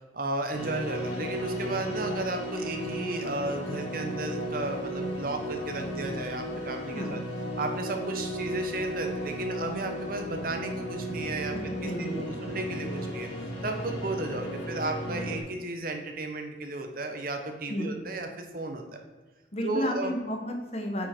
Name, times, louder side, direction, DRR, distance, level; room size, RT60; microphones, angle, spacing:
voice 1, 0.1-7.2 7.6-11.5 11.8-13.3 13.6-19.0 19.6-20.1, right 2 dB, 50° right, 4 dB, 1.1 m, -34 dB
sound 1, 0.5-15.4, equal, 75° left, 2.8 m, -35 dB
voice 2, 11.5-12.4 13.8-14.0 17.7-17.9 19.5-21.1, equal, 35° left, 3 dB, 1.2 m, -32 dB
9.1 x 5.6 x 4.5 m, 1.3 s
head